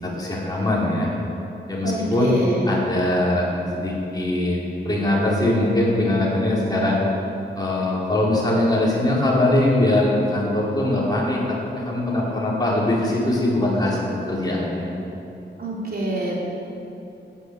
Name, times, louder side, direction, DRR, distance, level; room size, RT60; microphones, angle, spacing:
voice 1, 0.0-1.1 1.7-2.3 2.7-3.4 3.7-4.6 4.8-7.0 7.5-14.9, left 1 dB, 20° left, -6 dB, 4.9 m, -21 dB
voice 2, 1.8-2.6 15.6-16.3, right 2 dB, 55° right, -4 dB, 4.2 m, -26 dB
14.5 x 10.5 x 9.1 m, 2.9 s
wide cardioid pair, 135°, 19 cm